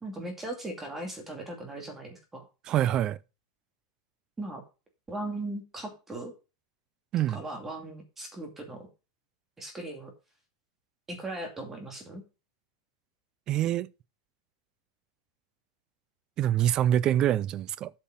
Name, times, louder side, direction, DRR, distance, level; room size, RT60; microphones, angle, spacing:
voice 1, 0.0-2.4 4.4-4.6 5.1-6.3 7.3-8.9 9.6-10.1 11.1-12.2, right 2 dB, 10° right, 2.5 m, -38 dB
voice 2, 2.7-3.2 7.1-7.4 13.5-13.9 16.4-17.9, right 11 dB, 25° right, 0.4 m, -25 dB
8.5 x 5.5 x 5.9 m
supercardioid pair, 165°, 3 cm